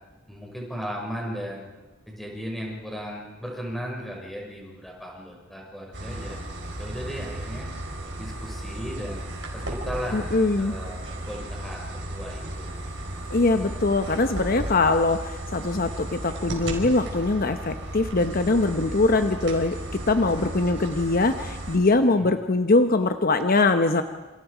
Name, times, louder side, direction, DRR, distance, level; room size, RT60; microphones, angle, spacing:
voice 1, 0.3-1.7 2.1-6.4 6.8-7.7 8.2-10.3 10.6-12.8 22.1-22.3, equal, ahead, -2 dB, 6.2 m, -36 dB
sound 1, 5.9-21.8, right 1 dB, 75° right, 5.2 m, -35 dB
voice 2, 10.1-10.8 13.3-19.8 20.1-24.0, left 3 dB, 50° left, 8 dB, 1.0 m, -22 dB
28.0 x 28.0 x 5.1 m, 1.2 s
head